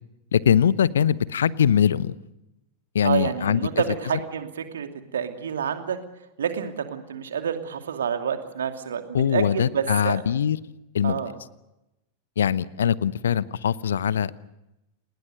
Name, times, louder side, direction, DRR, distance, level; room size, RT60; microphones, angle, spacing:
voice 1, 0.3-2.2 2.9-3.6 9.1-10.6 10.9-11.2 12.4-14.4, left 8 dB, 65° left, 20 dB, 0.9 m, -22 dB
voice 2, 3.0-6.0 6.4-10.2 11.0-11.3, right 7 dB, 65° right, 7 dB, 2.6 m, -28 dB
29.5 x 20.0 x 6.6 m, 0.91 s
figure-of-eight pair, 90°, 0 cm